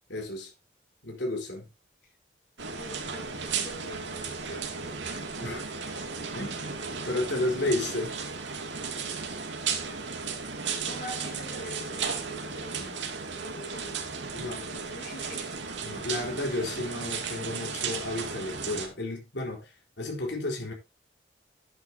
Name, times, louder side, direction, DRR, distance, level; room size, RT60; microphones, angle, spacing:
voice 1, 0.1-0.5 1.0-1.7 5.4-5.6 6.3-6.8 7.1-8.1 14.3-14.6 15.8-20.7, left 2 dB, 75° left, 4.2 m, -32 dB
sound 1, 2.6-18.9, right 5 dB, 80° right, 2.5 m, -35 dB
voice 2, 2.7-5.2 10.9-13.0 13.3-14.1 14.4-15.6, left 1 dB, 50° left, 5.7 m, -44 dB
12.0 x 10.0 x 2.8 m
head